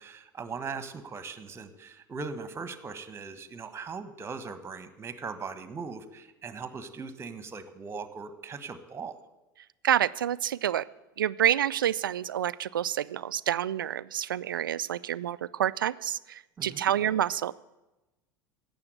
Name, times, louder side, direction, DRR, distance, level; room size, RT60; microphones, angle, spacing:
voice 1, 0.0-9.2 16.6-16.8, right 5 dB, 20° right, 11 dB, 1.4 m, -39 dB
voice 2, 9.8-10.8 11.2-17.5, right 10 dB, 75° right, 18 dB, 0.4 m, -28 dB
16.5 x 7.0 x 9.4 m, 1.0 s
figure-of-eight pair, 75°, 11 cm